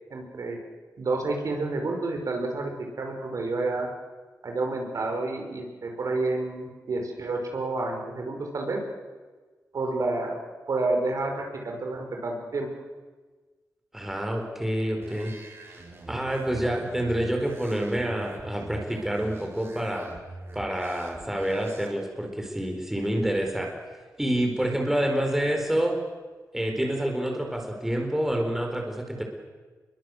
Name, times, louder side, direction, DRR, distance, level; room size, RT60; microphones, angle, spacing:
voice 1, 0.1-0.6 1.0-3.9 4.4-8.8 9.7-10.4 10.7-12.7, right 2 dB, 60° right, 2 dB, 5.4 m, -29 dB
voice 2, 13.9-15.3 16.1-20.1 20.5-23.7 24.2-26.0 26.5-29.2, right 1 dB, 5° right, 2 dB, 4.6 m, -27 dB
sound 1, 15.0-21.9, right 3 dB, 40° right, 4.2 m, -44 dB
28.5 x 22.5 x 8.0 m, 1.3 s
wide cardioid pair, 135°, 6 cm